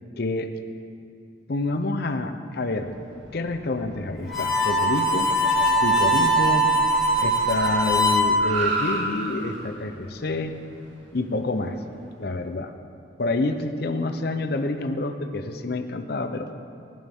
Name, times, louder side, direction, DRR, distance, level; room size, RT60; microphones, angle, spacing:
voice 1, 0.2-0.5 1.5-2.9 3.3-5.3 5.8-6.7 7.2-10.5 11.1-11.8 12.2-12.7 13.2-16.5, left 2 dB, 55° left, 7 dB, 0.6 m, -28 dB
Car, 2.6-12.2, right 2 dB, 80° right, 2.0 m, -36 dB
Harmonica, 4.3-8.3, right 1 dB, ahead, 1.8 m, -21 dB
15.0 x 10.5 x 3.6 m, 2.3 s
head